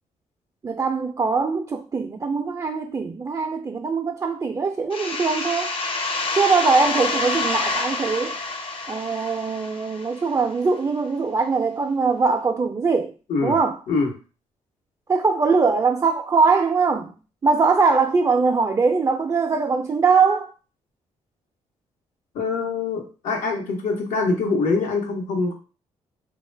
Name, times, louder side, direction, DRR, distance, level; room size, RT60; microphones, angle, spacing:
voice 1, 0.6-5.7 6.3-8.4 8.9-13.1 13.4-13.8 15.1-17.2 17.4-20.5, right 4 dB, 25° right, 0.4 m, -21 dB
sound 1, 4.9-10.4, left 3 dB, 45° left, 0.6 m, -27 dB
voice 2, 22.3-25.5, left 4 dB, 80° left, 1.0 m, -24 dB
3.0 x 2.3 x 3.3 m
cardioid pair, 70°, 13 cm